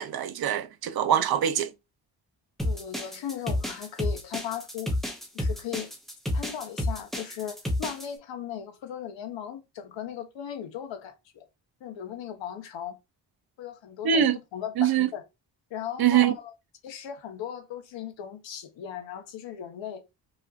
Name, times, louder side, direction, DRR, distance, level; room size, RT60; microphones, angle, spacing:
voice 1, 0.0-1.7 14.0-14.4 14.8-15.1 16.0-16.3, right 9 dB, 55° right, 0.6 m, -23 dB
voice 2, 2.6-5.0 5.3-5.9 6.3-11.5 11.8-13.0 13.6-15.2 15.7-16.5 16.8-20.0, left 9 dB, 80° left, 1.0 m, -37 dB
sound 1, 2.6-8.1, left 1 dB, ahead, 0.7 m, -30 dB
5.4 x 2.5 x 2.3 m
wide cardioid pair, 165°, 44 cm